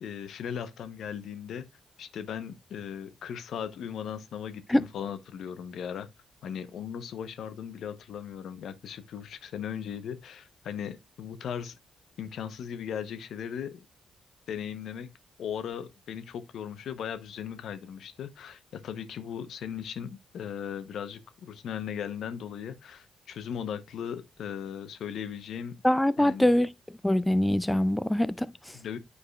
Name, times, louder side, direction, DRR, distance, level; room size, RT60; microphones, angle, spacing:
voice 1, 0.0-1.6 2.0-6.1 6.4-11.8 12.2-13.8 14.5-15.1 15.4-25.8 26.2-26.5 28.7-29.0, left 8 dB, 75° left, 0.7 m, -37 dB
voice 2, 25.8-26.7 27.0-28.8, left 1 dB, 10° left, 0.4 m, -24 dB
9.6 x 4.8 x 2.3 m
supercardioid pair, 50°, 0 cm